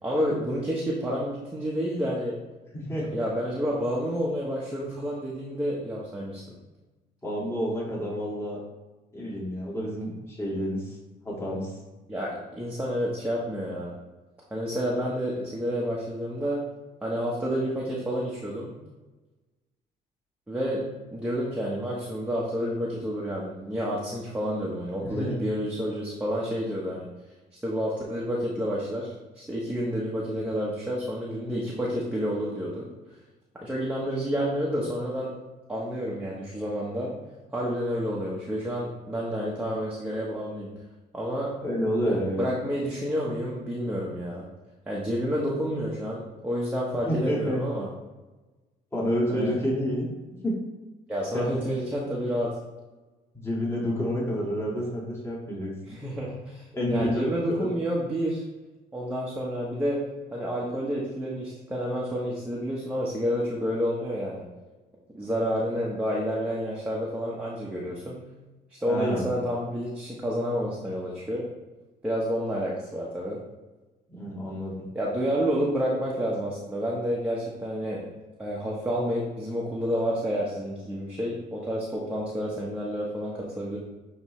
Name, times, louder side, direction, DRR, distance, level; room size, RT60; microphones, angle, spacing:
voice 1, 0.0-2.3 3.1-6.4 12.1-13.9 14.5-16.6 17.0-18.7 20.5-20.8 21.1-27.1 27.5-32.9 33.6-35.3 35.7-37.2 37.5-40.7 41.1-41.5 42.1-44.5 44.9-47.9 49.3-49.5 51.1-52.5 55.9-58.4 58.9-60.0 60.3-64.4 65.1-68.2 68.7-71.4 72.0-73.4 74.9-78.0 78.4-83.8, equal, 5° right, -5 dB, 1.1 m, -29 dB
voice 2, 2.7-3.3 7.2-8.6 9.1-11.0 11.2-11.7 25.0-25.4 41.6-42.4 47.1-47.6 48.9-50.1 50.4-50.6 51.3-51.8 53.3-55.7 56.7-57.7 68.9-69.3 74.1-74.7, equal, 15° left, -5 dB, 2.0 m, -29 dB
9.3 x 3.2 x 3.2 m, 1.2 s
cardioid pair, 110°, 17 cm